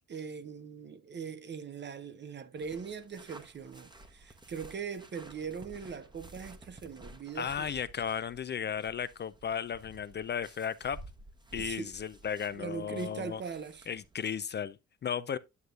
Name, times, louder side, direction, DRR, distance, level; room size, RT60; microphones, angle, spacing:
voice 1, 0.1-7.7 11.6-11.9 12.6-13.9, right 6 dB, 35° right, 0.7 m, -41 dB
sound 1, 2.6-14.2, right 1 dB, 15° right, 0.9 m, -53 dB
voice 2, 7.4-11.0 11.5-13.4 13.9-15.4, left 7 dB, 35° left, 0.4 m, -35 dB
9.5 x 6.6 x 2.4 m
cardioid pair, 90°, 30 cm